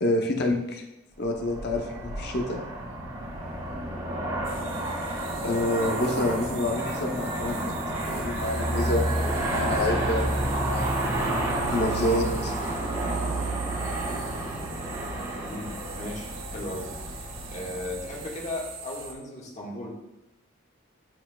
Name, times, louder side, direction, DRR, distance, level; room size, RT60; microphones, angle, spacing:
voice 1, 0.0-0.8 1.2-2.6 5.4-11.1 11.7-12.5, left 1 dB, 60° left, 2 dB, 0.8 m, -28 dB
Aircraft, 1.3-18.6, right 1 dB, 35° right, 2.1 m, -30 dB
sound 1, 4.4-19.1, right 5 dB, 80° right, 1.0 m, -42 dB
voice 2, 15.4-16.3 16.5-16.9 17.5-19.9, left 1 dB, 35° left, -3 dB, 1.6 m, -36 dB
11.5 x 4.5 x 2.3 m, 0.92 s
head